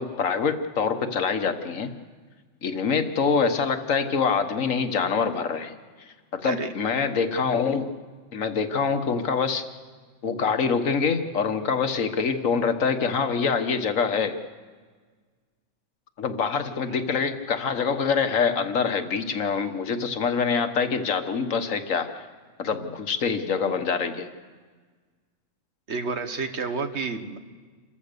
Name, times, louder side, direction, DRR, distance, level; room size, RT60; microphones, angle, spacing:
voice 1, 0.0-1.9 2.6-5.7 6.3-7.9 8.3-9.6 10.2-14.4 16.2-22.3 22.6-24.3, left 5 dB, 90° left, 8 dB, 1.6 m, -25 dB
voice 2, 25.9-27.4, right 4 dB, 60° right, 8 dB, 1.6 m, -30 dB
28.0 x 14.5 x 6.8 m, 1.5 s
omnidirectional pair, 1.3 m